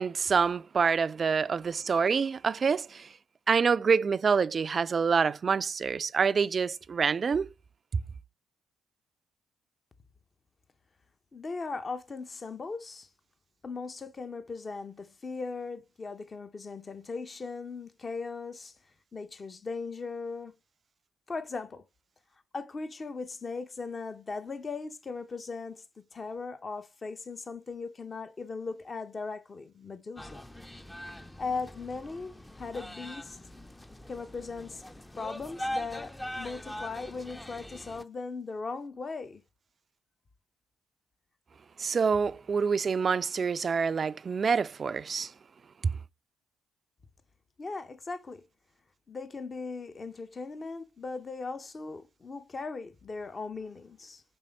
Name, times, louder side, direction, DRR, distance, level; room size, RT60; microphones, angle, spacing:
voice 1, 0.0-3.1 3.5-7.5 41.8-45.3 45.8-45.9, right 5 dB, 45° right, 0.3 m, -26 dB
voice 2, 11.3-13.1 13.6-18.7 19.1-20.6 21.3-21.9 22.5-30.5 31.4-33.4 34.1-34.8 35.2-39.4 47.6-48.4 49.1-54.2, left 4 dB, 40° left, 0.8 m, -38 dB
sound 1, 30.2-38.0, equal, 10° left, 0.5 m, -42 dB
5.4 x 3.4 x 5.2 m
hypercardioid pair, 50°, 0 cm